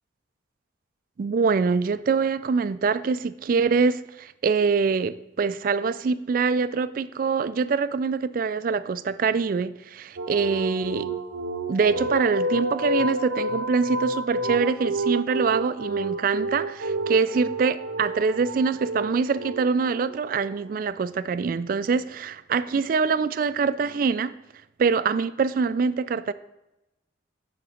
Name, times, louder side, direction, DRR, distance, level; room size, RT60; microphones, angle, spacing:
voice 1, 1.2-11.1 11.7-24.3 24.8-26.3, right 5 dB, 45° right, 0.3 m, -24 dB
sound 1, 10.2-20.8, right 1 dB, 85° right, 0.7 m, -30 dB
10.5 x 3.9 x 4.9 m
head